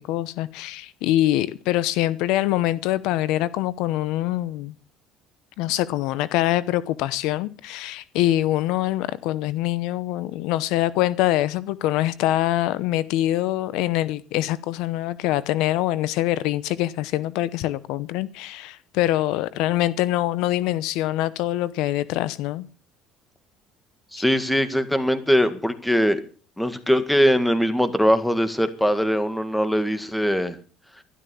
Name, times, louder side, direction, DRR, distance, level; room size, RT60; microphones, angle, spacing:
voice 1, 0.0-4.7 5.6-22.7 24.2-24.3, left 15 dB, 75° left, 0.8 m, -24 dB
voice 2, 24.1-26.2 26.6-30.6, equal, 5° left, 1.8 m, -21 dB
12.5 x 12.5 x 7.1 m
cardioid pair, 120°, 0 cm